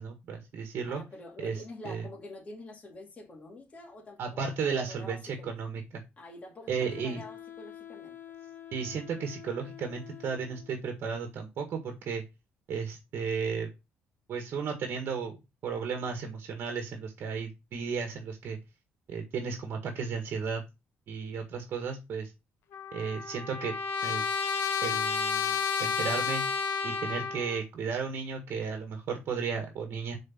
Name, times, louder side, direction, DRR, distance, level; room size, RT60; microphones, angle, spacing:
voice 1, 0.0-1.0 1.4-2.0 4.2-6.0 6.7-7.2 8.7-12.2 12.7-13.7 14.3-18.6 19.1-20.6 21.1-22.3 22.9-23.7 24.0-24.2 24.8-26.4 26.8-30.2, right 5 dB, 55° right, 1.7 m, -34 dB
voice 2, 0.8-4.5 4.8-5.5 6.2-8.2, left 2 dB, 30° left, 2.3 m, -47 dB
Wind instrument woodwind instrument, 6.8-10.9, left 11 dB, 50° left, 1.7 m, -47 dB
Trumpet, 22.7-27.6, left 6 dB, 70° left, 0.9 m, -31 dB
6.4 x 4.1 x 5.8 m
cardioid pair, 135°, 4 cm